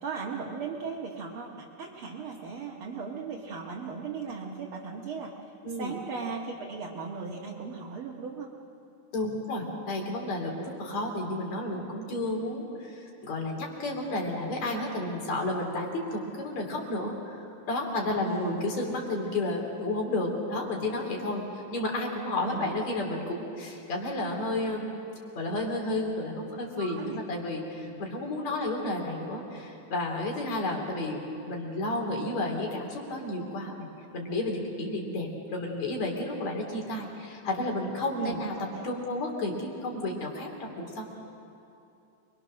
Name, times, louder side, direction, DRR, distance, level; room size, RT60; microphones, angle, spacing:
voice 1, 0.0-5.3 5.8-8.5 18.2-18.6 22.4-22.7 26.8-27.2 27.8-28.0 38.1-38.4 38.7-38.9, right 5 dB, 50° right, -3 dB, 2.1 m, -37 dB
voice 2, 9.1-17.4 17.7-24.9 25.3-31.2 31.5-33.9 34.1-38.5 38.8-41.1, left 2 dB, 60° left, 1 dB, 4.2 m, -32 dB
27.5 x 22.0 x 6.4 m, 2.6 s
omnidirectional pair, 3.6 m